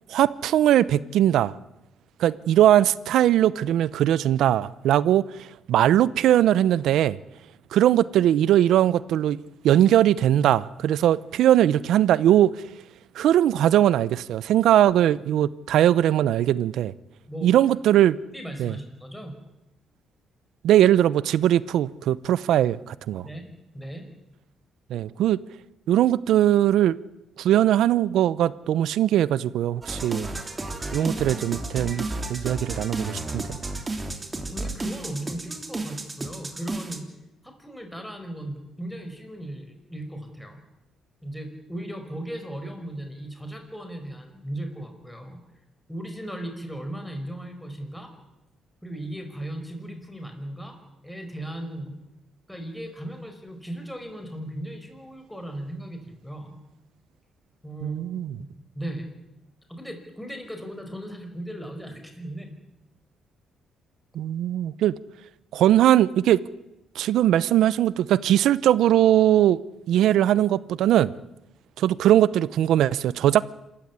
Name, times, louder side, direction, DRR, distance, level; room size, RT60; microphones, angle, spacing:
voice 1, 0.1-1.5 2.2-5.2 5.7-7.2 7.7-12.5 13.2-16.9 17.4-18.2 18.6-18.7 20.6-23.2 24.9-25.4 25.9-27.0 27.4-30.3 30.9-33.4 57.8-58.3 64.1-64.9 65.5-66.4 67.0-69.6 69.9-71.1 71.8-73.4, right 12 dB, 80° right, 0.8 m, -20 dB
voice 2, 18.3-19.3 23.2-23.5 23.7-24.1 31.0-31.4 33.7-33.8 34.2-37.1 37.4-40.6 41.2-45.4 45.9-48.1 48.8-50.8 51.0-51.9 52.5-56.6 57.6-58.0 58.4-58.5 58.7-59.1 59.7-62.5, right 1 dB, 5° left, 5.1 m, -37 dB
sound 1, 29.8-37.0, right 2 dB, 25° right, 3.5 m, -32 dB
26.5 x 14.5 x 9.6 m
cardioid pair, 90°, 0 cm